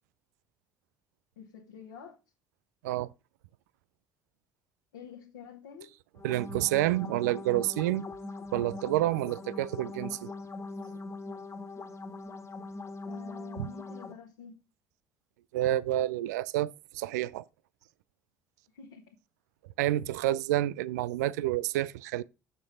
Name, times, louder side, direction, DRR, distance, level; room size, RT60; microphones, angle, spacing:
voice 1, 1.4-2.2 4.9-5.9 13.1-14.6 18.7-19.2 19.8-19.9, left 6 dB, 80° left, 1.4 m, -48 dB
sound 1, 6.2-14.1, left 3 dB, 30° left, 1.6 m, -41 dB
voice 2, 6.2-8.1 8.5-10.3 13.6-13.7 15.5-17.4 19.8-22.2, right 15 dB, 75° right, 0.4 m, -29 dB
6.8 x 6.6 x 4.9 m
figure-of-eight pair, 55°, 9 cm